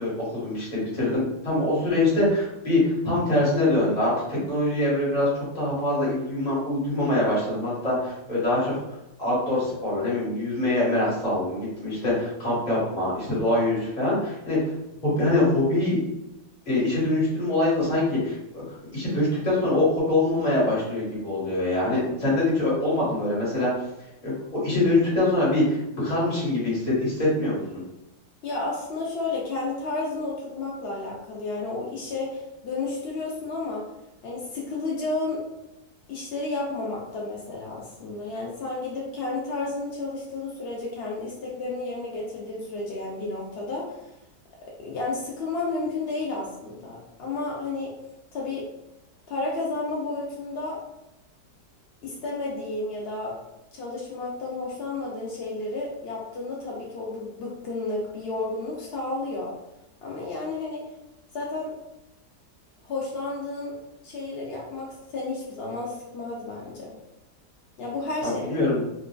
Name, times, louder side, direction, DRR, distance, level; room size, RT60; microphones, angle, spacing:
voice 1, 0.0-8.8 9.2-14.6 15.0-16.0 16.7-18.6 18.9-23.7 24.2-27.8 68.2-68.8, left 2 dB, 30° left, -7 dB, 1.2 m, -24 dB
voice 2, 28.4-33.8 34.2-35.4 36.1-44.0 44.8-47.9 48.3-48.6 49.3-50.8 52.0-53.4 53.7-59.5 60.0-60.8 61.3-61.7 62.8-63.7 64.0-66.9 67.8-68.7, left 3 dB, 75° left, -3 dB, 0.5 m, -32 dB
4.1 x 2.4 x 2.2 m, 0.90 s
omnidirectional pair, 1.8 m